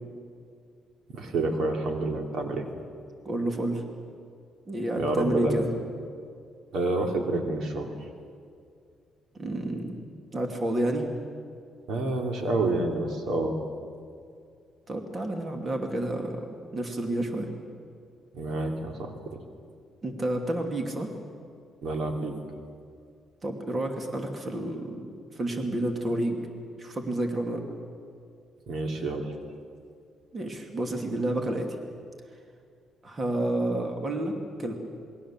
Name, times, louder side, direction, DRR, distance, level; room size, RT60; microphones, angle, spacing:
voice 1, 1.1-2.7 5.0-5.6 6.7-7.9 11.9-13.6 18.3-19.4 21.8-22.4 28.7-29.4, right 2 dB, 65° right, 3 dB, 3.1 m, -28 dB
voice 2, 3.2-3.8 4.7-5.7 9.3-9.9 10.3-11.0 14.9-16.4 16.7-17.5 20.0-21.1 23.4-26.5 26.8-27.6 30.3-31.7 33.0-34.8, right 1 dB, 30° right, 3 dB, 2.7 m, -30 dB
27.5 x 21.5 x 7.5 m, 2.3 s
cardioid pair, 125°, 0 cm